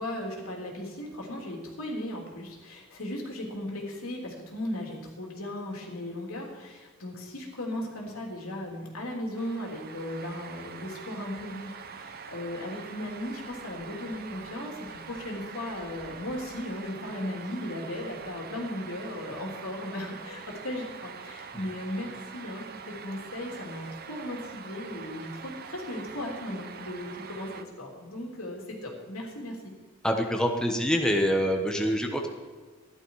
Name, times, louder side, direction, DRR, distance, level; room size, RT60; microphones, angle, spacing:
voice 1, 0.0-29.6, left 1 dB, 90° left, -1 dB, 3.3 m, -37 dB
sound 1, 9.4-27.6, right 6 dB, 45° right, 0.9 m, -44 dB
voice 2, 30.0-32.3, equal, 5° left, 2 dB, 1.1 m, -26 dB
14.0 x 11.0 x 4.8 m, 1.5 s
head